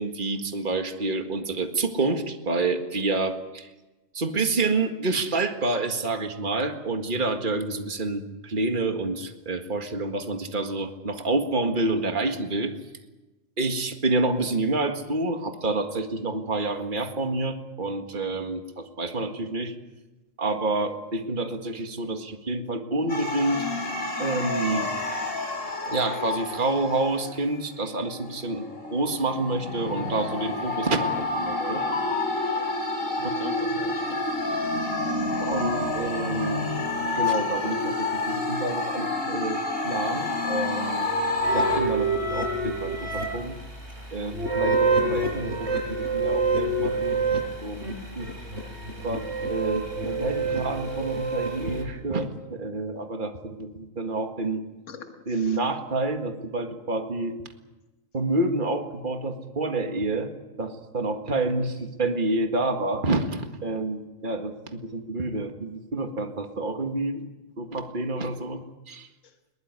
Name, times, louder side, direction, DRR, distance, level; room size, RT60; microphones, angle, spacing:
voice 1, 0.0-3.7 4.1-12.7 13.6-19.8 20.4-23.7 24.2-24.9 25.9-31.8 33.2-33.4 33.7-34.1 35.4-36.7 37.2-41.1 41.5-43.6 44.1-48.3 49.0-54.6 55.3-57.4 58.1-60.3 60.6-67.3 67.6-68.6 68.9-69.1, right 2 dB, 40° right, 5 dB, 2.0 m, -28 dB
sound 1, 23.1-27.5 28.1-41.8, left 2 dB, 85° left, 5.1 m, -29 dB
voice 2, 31.6-34.2 37.3-37.4 54.9-55.6 69.2-69.3, left 7 dB, 70° left, 5 dB, 1.8 m, -39 dB
sound 2, 41.4-51.8, right 3 dB, 55° right, 6.7 m, -28 dB
21.5 x 20.0 x 9.7 m, 1.1 s
omnidirectional pair, 1.3 m